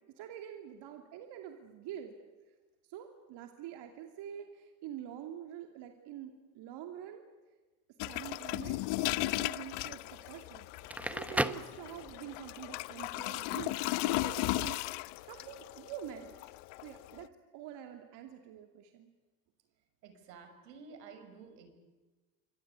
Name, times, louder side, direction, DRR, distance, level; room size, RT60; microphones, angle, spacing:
voice 1, 0.2-2.2 2.8-7.2 8.0-16.5 16.8-19.1, right 10 dB, 55° right, 4 dB, 2.8 m, -46 dB
sound 1, 8.0-17.3, left 20 dB, 55° left, 0.9 m, -36 dB
Crackle, 10.7-12.4, right 1 dB, 5° right, 0.9 m, -35 dB
voice 2, 20.0-21.7, right 5 dB, 80° right, 7 dB, 5.9 m, -52 dB
28.5 x 25.0 x 8.3 m, 1.2 s
hypercardioid pair, 90°, 49 cm